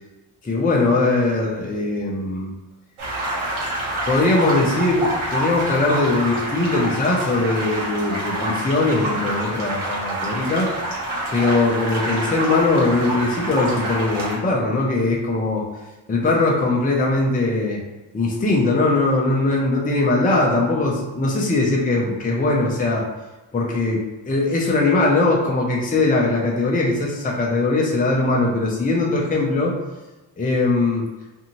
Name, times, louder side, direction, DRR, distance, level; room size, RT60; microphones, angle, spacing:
voice 1, 0.4-2.5 4.1-10.7 11.3-15.7 16.1-17.8 18.1-23.1 23.5-29.8 30.4-31.1, left 2 dB, 20° left, -2 dB, 0.5 m, -20 dB
sound 1, 3.0-14.4, right 1 dB, 85° right, 1.1 m, -27 dB
2.6 x 2.6 x 2.9 m, 1.1 s
wide cardioid pair, 100°, 49 cm